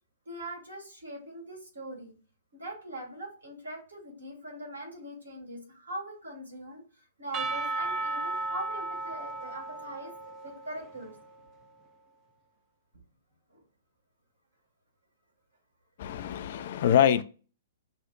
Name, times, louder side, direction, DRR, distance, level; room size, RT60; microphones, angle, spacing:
voice 1, 0.3-2.1 2.5-6.8 7.2-10.1 10.4-11.2 13.5-13.6, right 1 dB, 75° right, 1.9 m, -41 dB
Percussion / Church bell, 7.3-11.3, right 2 dB, 25° right, 0.4 m, -35 dB
voice 2, 16.0-17.2, left 9 dB, 50° left, 0.3 m, -24 dB
6.1 x 2.1 x 2.4 m
figure-of-eight pair, 115°, 0 cm